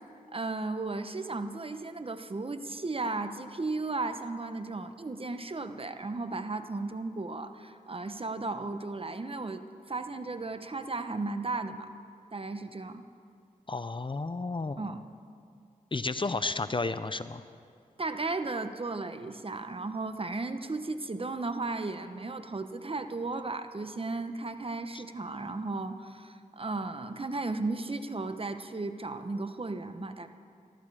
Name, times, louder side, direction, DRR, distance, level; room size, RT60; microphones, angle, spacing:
voice 1, 0.3-11.9 12.3-13.0 14.8-15.0 18.0-30.3, right 3 dB, 40° right, 9 dB, 1.0 m, -35 dB
voice 2, 13.7-14.9 15.9-17.4 24.9-25.0, left 3 dB, 35° left, 13 dB, 0.6 m, -32 dB
19.5 x 14.0 x 4.9 m, 2.3 s
cardioid pair, 45°, 15 cm